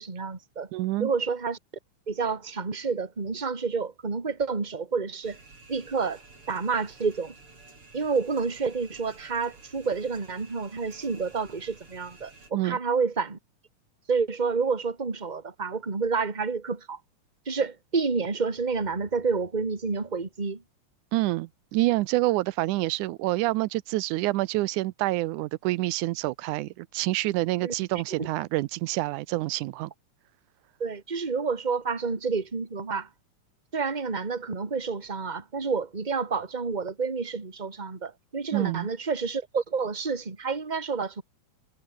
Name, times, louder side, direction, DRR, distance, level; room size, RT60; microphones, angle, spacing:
voice 1, 0.0-0.7 1.0-1.6 2.1-5.4 5.7-6.2 6.5-7.3 7.9-13.4 14.1-17.0 17.5-20.6 27.6-28.3 30.8-33.1 33.7-41.2, right 5 dB, 15° right, 2.0 m, -29 dB
voice 2, 0.7-1.1 12.5-12.8 21.1-29.9 38.5-38.9, right 18 dB, 90° right, 2.1 m, -27 dB
sound 1, 5.2-12.5, right 3 dB, 45° right, 7.1 m, -52 dB
omnidirectional pair, 3.5 m